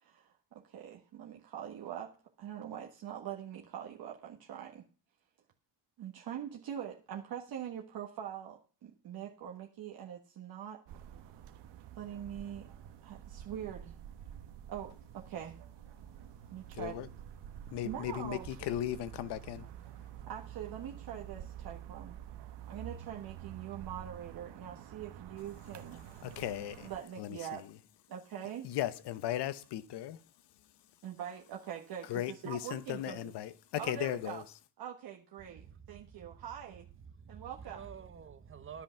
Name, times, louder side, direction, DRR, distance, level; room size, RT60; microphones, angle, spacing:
voice 1, 0.0-2.1 2.4-4.8 6.0-10.8 11.9-12.7 13.0-14.0 14.7-15.6 16.5-17.0 17.8-18.4 20.3-22.2 22.7-26.1 26.8-27.6 28.1-28.7 31.0-33.2 33.8-34.4 34.8-36.9 37.3-37.8, right 9 dB, 60° right, 1.4 m, -43 dB
sound 1, 10.9-27.0, right 10 dB, 85° right, 1.3 m, -49 dB
voice 2, 16.7-17.1 17.7-19.7 26.2-26.9 27.2-27.8 28.6-30.2 32.0-34.4, left 12 dB, 75° left, 1.0 m, -37 dB
voice 3, 35.4-36.5 36.8-38.8, right 7 dB, 30° right, 1.0 m, -50 dB
10.5 x 8.4 x 5.7 m
cardioid pair, 115°, 41 cm